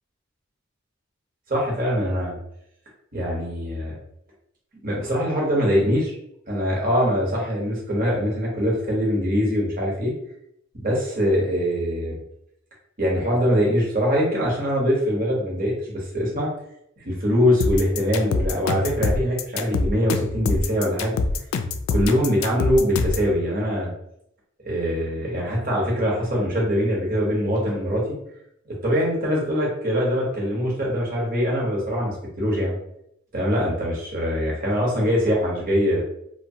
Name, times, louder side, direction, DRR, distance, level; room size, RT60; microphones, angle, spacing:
voice 1, 1.5-2.4 3.1-4.0 4.8-6.1 6.5-10.1 10.7-12.2 13.0-16.5 17.0-21.2 21.9-23.9 24.7-28.2 28.8-32.7 33.3-36.0, equal, 45° right, -3 dB, 1.0 m, -23 dB
sound 1, 17.6-23.3, left 3 dB, 85° left, 0.3 m, -24 dB
2.8 x 2.2 x 2.7 m, 0.76 s
head